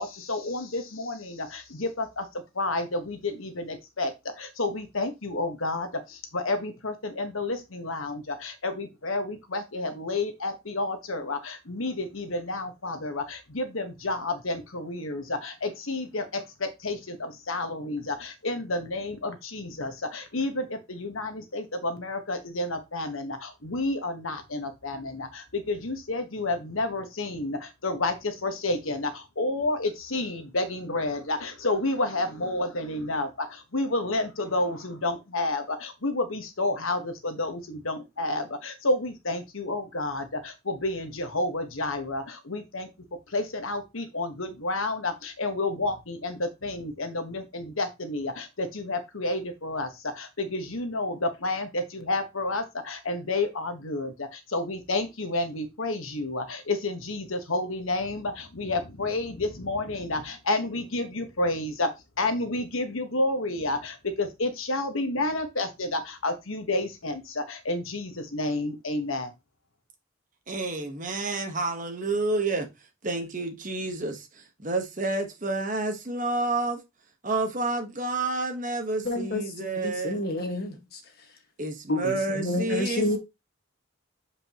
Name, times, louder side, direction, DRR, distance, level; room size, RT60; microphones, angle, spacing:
voice 1, 0.0-42.9 43.3-61.9 62.2-69.3, left 2 dB, 80° left, 1.4 m, -30 dB
voice 2, 70.5-72.7 73.0-76.8 77.2-80.2 81.6-83.2, right 2 dB, 40° right, 1.3 m, -29 dB
voice 3, 79.0-81.0 81.9-83.2, left 1 dB, 45° left, 1.7 m, -29 dB
7.5 x 5.2 x 3.0 m
head